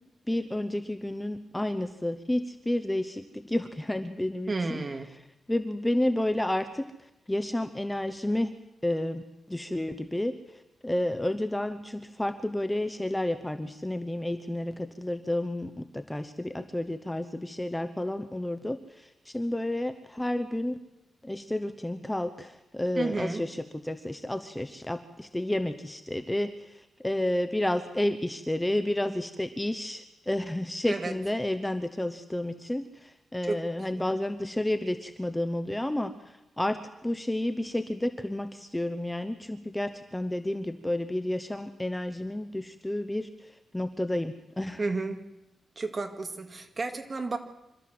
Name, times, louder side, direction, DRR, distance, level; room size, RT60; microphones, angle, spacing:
voice 1, 0.3-4.8 5.5-6.9 7.3-8.5 8.8-9.2 9.5-10.3 10.8-20.7 21.2-36.1 36.6-43.3 43.7-44.8, left 1 dB, 10° left, 9 dB, 0.9 m, -31 dB
voice 2, 4.5-5.1 23.0-23.4 30.9-31.1 33.5-33.6 34.0-34.1 44.8-45.2 45.8-47.4, right 3 dB, 30° right, 6 dB, 2.0 m, -32 dB
26.0 x 13.0 x 7.8 m, 0.94 s
wide cardioid pair, 140°, 0 cm